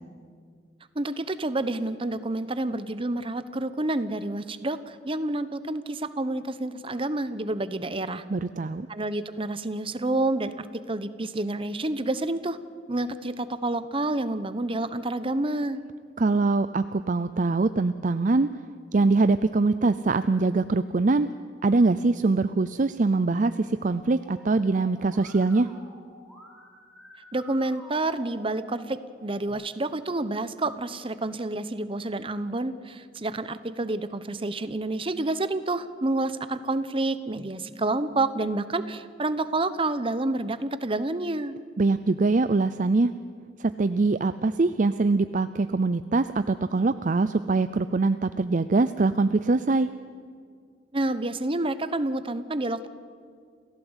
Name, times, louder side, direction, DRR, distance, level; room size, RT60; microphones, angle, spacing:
voice 1, 0.9-8.2 8.9-12.6 12.9-15.8 27.3-41.6 50.9-52.9, right 2 dB, 30° right, 12 dB, 0.9 m, -29 dB
voice 2, 8.3-8.9 16.2-18.5 18.9-21.3 21.6-25.7 41.8-43.1 43.6-49.9, right 3 dB, 45° right, 12 dB, 0.5 m, -23 dB
Musical instrument, 23.9-29.5, equal, ahead, 4.3 m, -50 dB
28.5 x 16.0 x 8.1 m, 2.1 s
head